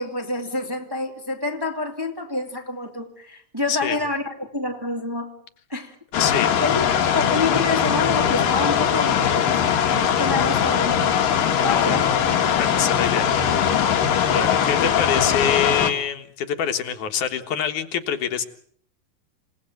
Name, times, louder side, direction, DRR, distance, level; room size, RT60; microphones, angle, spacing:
voice 1, 0.0-5.3 5.7-5.9 6.6-6.9 7.1-11.2 11.6-12.1 12.4-12.5, left 2 dB, 10° right, 2.1 m, -28 dB
sound 1, 6.1-15.9, left 8 dB, 90° left, 3.5 m, -20 dB
voice 2, 6.2-6.5 11.7-12.2 12.5-13.3 14.2-18.4, left 8 dB, 70° left, 2.8 m, -25 dB
27.5 x 18.5 x 9.1 m
omnidirectional pair, 3.8 m